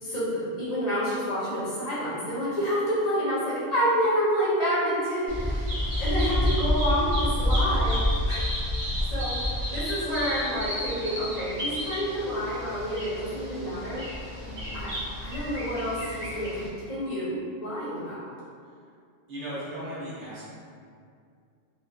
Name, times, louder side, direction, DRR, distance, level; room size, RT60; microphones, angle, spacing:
voice 1, 0.0-8.4 9.1-14.1 14.7-14.9 15.2-18.2, equal, 40° left, -10 dB, 0.6 m, -28 dB
Bird vocalization bird call bird song, 5.3-16.7, left 1 dB, 25° right, 0.6 m, -29 dB
voice 2, 14.4-14.8 19.3-20.5, equal, 70° right, -10 dB, 1.1 m, -38 dB
2.4 x 2.4 x 2.2 m, 2.3 s
omnidirectional pair, 1.3 m